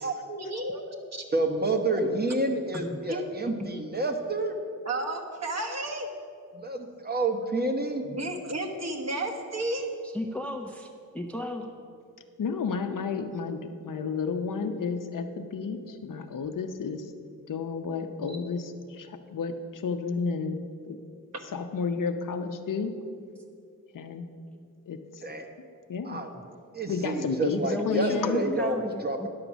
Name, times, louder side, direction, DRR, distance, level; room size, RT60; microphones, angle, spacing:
voice 1, 0.0-1.2 3.1-3.2 4.8-6.1 8.0-9.9 13.2-13.3 18.3-18.4, right 2 dB, 50° right, 2 dB, 1.3 m, -33 dB
voice 2, 1.3-4.5 6.5-8.0 25.2-25.5 26.0-26.3 26.7-29.3, right 2 dB, 30° right, 5 dB, 1.0 m, -29 dB
voice 3, 10.0-11.7 27.6-29.3, left 1 dB, 5° left, 4 dB, 0.6 m, -35 dB
voice 4, 12.4-17.1 17.5-20.6 20.9-21.0 21.5-22.9 23.9-24.3 24.9-25.0 25.9-26.2 26.9-27.6 27.9-28.4, left 5 dB, 65° left, 7 dB, 0.7 m, -31 dB
10.5 x 6.7 x 6.1 m, 2.4 s
wide cardioid pair, 110°, 34 cm